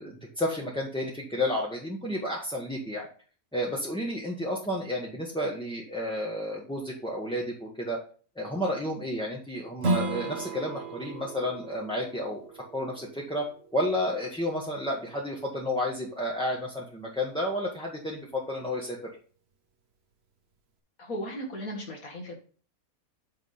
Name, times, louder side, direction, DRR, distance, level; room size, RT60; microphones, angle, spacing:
voice 1, 0.0-3.1 3.5-8.0 8.3-12.4 12.7-13.5 13.7-19.0, left 1 dB, 5° left, -4 dB, 1.3 m, -31 dB
Strum, 9.8-15.0, right 2 dB, 50° right, 1.2 m, -35 dB
voice 2, 21.0-22.3, equal, 70° left, 0 dB, 2.2 m, -36 dB
9.0 x 3.7 x 5.6 m, 0.40 s
omnidirectional pair, 1.5 m